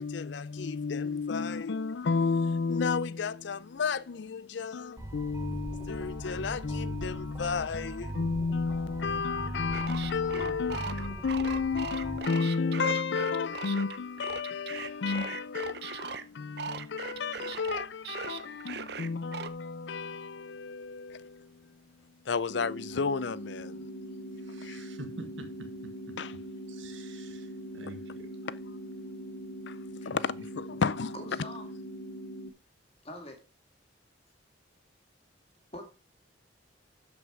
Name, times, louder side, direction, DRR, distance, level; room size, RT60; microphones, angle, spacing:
voice 1, 0.0-23.9 24.6-24.8 26.2-26.4 28.4-28.5 29.7-29.8 30.1-31.1, left 5 dB, 65° left, 0.5 m, -32 dB
sound 1, 5.0-12.2, right 1 dB, 15° right, 0.5 m, -40 dB
sound 2, 9.7-16.2 16.6-19.5, right 6 dB, 55° right, 0.7 m, -39 dB
sound 3, 22.5-32.5, equal, 80° left, 0.9 m, -42 dB
voice 2, 24.4-26.2 26.7-28.3, right 2 dB, 75° right, 1.7 m, -47 dB
voice 3, 31.1-31.7 33.0-33.4 35.7-35.9, left 1 dB, 30° left, 2.1 m, -43 dB
12.5 x 5.3 x 4.8 m
head